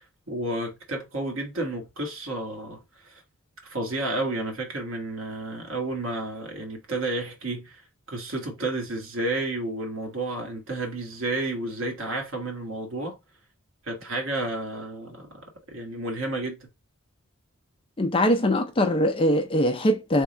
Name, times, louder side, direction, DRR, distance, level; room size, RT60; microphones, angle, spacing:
voice 1, 0.0-3.2 3.6-7.8 8.1-13.2 13.8-16.6, right 2 dB, 65° right, 1.4 m, -31 dB
voice 2, 18.0-20.2, equal, 25° left, 0.5 m, -22 dB
3.5 x 2.3 x 4.2 m
head